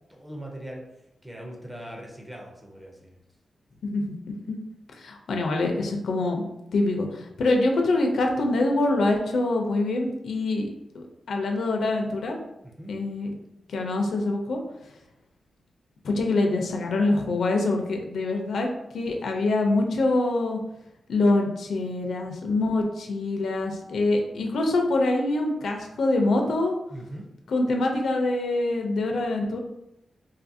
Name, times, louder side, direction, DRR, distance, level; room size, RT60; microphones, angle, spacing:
voice 1, 0.1-0.8 1.2-3.2 12.6-12.9 26.9-27.2, right 1 dB, 10° right, -1 dB, 0.5 m, -40 dB
voice 2, 3.8-4.1 4.5-4.6 5.0-6.5 6.7-10.7 10.9-12.4 12.9-13.3 13.7-14.6 16.0-20.6 21.1-26.8 27.5-29.6, left 2 dB, 75° left, 2 dB, 0.4 m, -25 dB
2.6 x 2.4 x 2.6 m, 0.87 s
wide cardioid pair, 140°, 0 cm